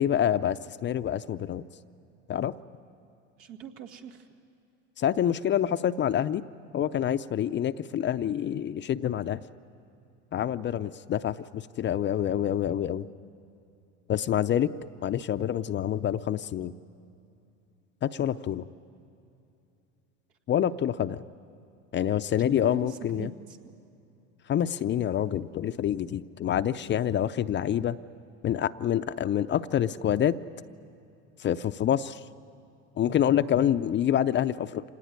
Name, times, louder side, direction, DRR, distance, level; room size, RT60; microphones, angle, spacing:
voice 1, 0.0-1.6 2.3-2.5 5.0-6.4 6.7-9.4 10.3-13.1 14.1-14.7 15.0-16.7 18.0-18.7 20.5-21.2 21.9-23.3 24.5-28.0 28.4-30.4 31.4-32.2 33.0-34.8, left 10 dB, 30° left, 12 dB, 0.5 m, -27 dB
voice 2, 3.4-4.3 22.5-23.7, right 7 dB, 75° right, 4 dB, 2.2 m, -43 dB
26.0 x 19.0 x 9.6 m, 2.7 s
supercardioid pair, 95°, 38 cm